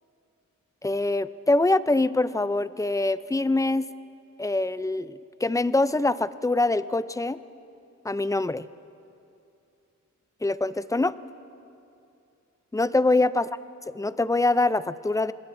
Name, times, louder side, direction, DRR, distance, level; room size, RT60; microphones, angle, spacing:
voice 1, 0.8-3.9 4.4-7.4 8.0-8.7 10.4-11.2 12.7-13.5 13.9-15.3, left 2 dB, 10° left, 15 dB, 0.4 m, -24 dB
25.5 x 21.0 x 2.6 m, 2.6 s
cardioid pair, 70°, 32 cm